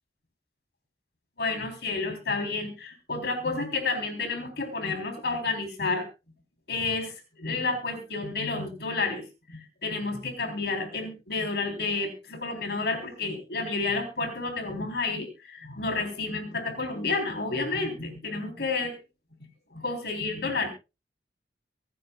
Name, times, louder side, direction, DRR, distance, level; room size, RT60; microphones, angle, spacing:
voice 1, 1.4-6.1 6.7-19.0 19.7-20.7, left 3 dB, 65° left, 4 dB, 3.6 m, -30 dB
25.0 x 10.0 x 2.3 m, 0.29 s
head